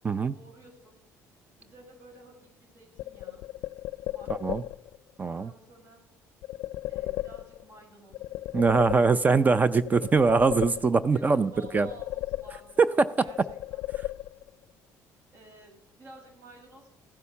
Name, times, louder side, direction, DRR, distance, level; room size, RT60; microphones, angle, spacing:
voice 1, 0.3-1.0 1.6-3.4 4.0-4.4 5.2-6.0 6.9-8.2 11.1-13.8 15.3-16.9, right 1 dB, 55° right, 1 dB, 6.2 m, -52 dB
sound 1, 3.0-5.0 6.4-7.8 8.1-9.5 9.8-11.2 11.6-12.9 13.3-14.6, left 16 dB, 75° left, 0.4 m, -36 dB
voice 2, 4.3-4.6 5.2-5.5 8.5-11.9 12.8-13.1, right 4 dB, 25° right, 15 dB, 0.4 m, -22 dB
15.0 x 8.3 x 5.7 m, 0.90 s
cardioid pair, 110°, 6 cm